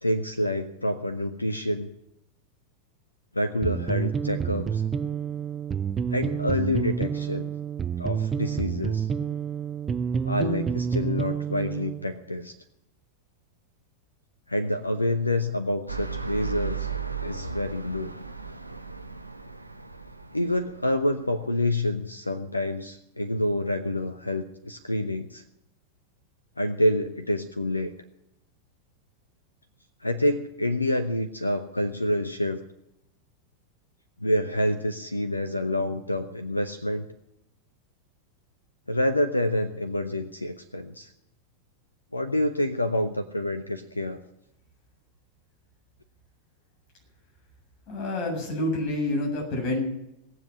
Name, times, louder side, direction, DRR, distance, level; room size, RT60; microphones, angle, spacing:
voice 1, 0.0-1.9 3.3-4.8 6.1-7.5 8.0-9.1 10.2-12.5 14.5-16.9 17.2-18.1 20.3-25.4 26.6-27.9 30.0-32.6 34.2-37.1 38.9-41.1 42.1-44.2, left 1 dB, 85° left, 10 dB, 0.8 m, -27 dB
sound 1, 3.6-12.1, right 7 dB, 20° right, 0.6 m, -29 dB
sound 2, 15.9-21.5, right 6 dB, 85° right, 0.9 m, -36 dB
voice 2, 47.9-49.8, left 1 dB, 40° left, 0 dB, 7.6 m, -28 dB
19.0 x 7.7 x 9.7 m, 0.84 s
figure-of-eight pair, 90°, 0 cm